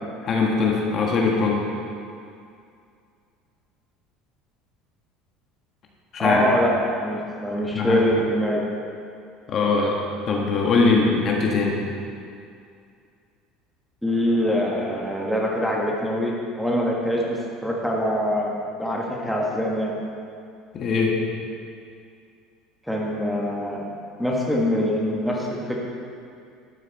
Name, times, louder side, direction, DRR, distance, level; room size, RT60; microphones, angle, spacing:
voice 1, 0.2-1.6 6.1-6.4 7.7-8.0 9.5-10.0 10.3-11.8 20.7-21.2, left 4 dB, 45° left, -1 dB, 1.6 m, -21 dB
voice 2, 6.2-6.7 7.0-8.6 14.0-20.0 22.9-23.9 24.2-25.8, equal, ahead, -3 dB, 1.7 m, -24 dB
12.5 x 6.9 x 4.2 m, 2.4 s
supercardioid pair, 110°, 0 cm